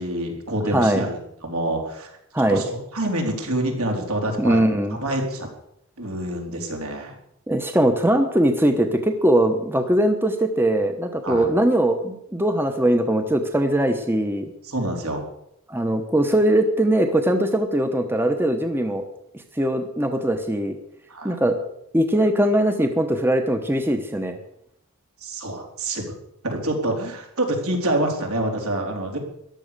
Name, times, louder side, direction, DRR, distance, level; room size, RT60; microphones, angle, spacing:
voice 1, 0.0-2.1 2.5-4.6 5.0-5.5 6.0-7.2 11.2-11.5 14.6-15.3 21.1-21.4 25.2-26.0 26.4-29.2, right 1 dB, 75° right, 2 dB, 3.8 m, -26 dB
voice 2, 0.7-1.0 2.3-2.6 4.4-5.0 7.5-14.5 15.7-19.0 19.6-20.7 21.2-21.6 21.9-24.4, right 1 dB, 10° right, 6 dB, 1.0 m, -21 dB
14.0 x 11.5 x 6.8 m, 0.77 s
head